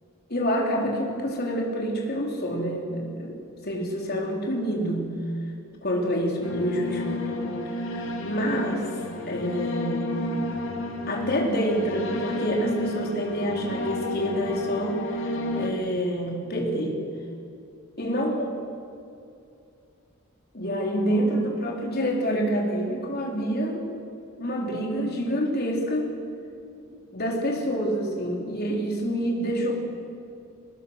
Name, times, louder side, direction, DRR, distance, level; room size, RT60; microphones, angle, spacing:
voice 1, 0.3-3.4 3.6-5.1 5.8-7.4 7.8-8.9 9.3-10.2 11.1-17.0 18.0-18.5 20.5-23.9 24.4-26.1 26.9-29.7, equal, 50° left, 0 dB, 4.0 m, -27 dB
sound 1, 6.4-15.7, left 2 dB, 65° left, 2.4 m, -31 dB
23.5 x 20.0 x 6.6 m, 2.5 s
head